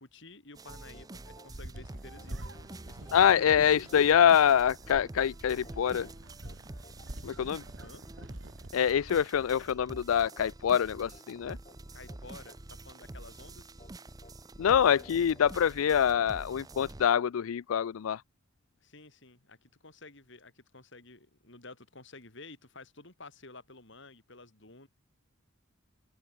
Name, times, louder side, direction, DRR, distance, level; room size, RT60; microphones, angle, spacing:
voice 1, 0.0-2.4 2.9-4.0 7.8-8.0 11.9-13.7 18.8-24.9, left 3 dB, 60° left, 4.2 m, -51 dB
sound 1, 0.5-17.1, right 2 dB, 20° right, 0.7 m, -47 dB
sound 2, 0.9-17.8, left 2 dB, 30° left, 6.9 m, -60 dB
sound 3, 1.5-9.3, right 1 dB, 65° right, 2.3 m, -47 dB
voice 2, 3.1-6.1 7.2-7.6 8.7-11.6 14.6-18.2, left 8 dB, 90° left, 0.4 m, -25 dB
open air
head